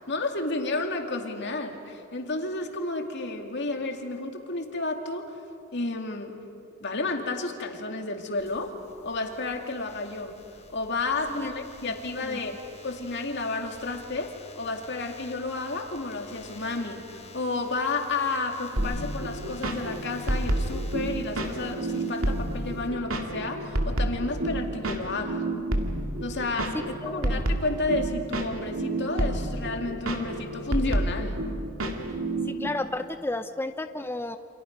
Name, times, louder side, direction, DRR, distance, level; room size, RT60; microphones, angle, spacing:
voice 1, 0.0-5.4 5.7-6.4 6.8-8.7 9.0-10.4 10.7-12.5 12.8-25.5 26.2-31.4, left 3 dB, 55° left, 3 dB, 2.4 m, -31 dB
sound 1, 8.4-22.9, left 2 dB, 35° left, 3.8 m, -50 dB
sound 2, 18.8-32.7, right 1 dB, 85° right, 2.2 m, -30 dB
voice 2, 27.0-27.4 32.5-34.4, left 2 dB, 10° left, 8 dB, 0.5 m, -32 dB
29.0 x 27.0 x 5.3 m, 2.6 s
head